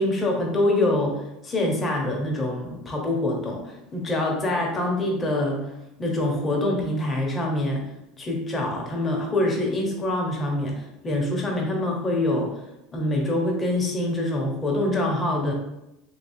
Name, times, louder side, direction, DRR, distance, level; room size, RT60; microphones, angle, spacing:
voice 1, 0.0-5.7 6.0-7.9 8.2-12.6 12.9-15.5, left 1 dB, 25° left, -1 dB, 0.9 m, -25 dB
3.2 x 3.1 x 2.7 m, 0.89 s
supercardioid pair, 105°, 0 cm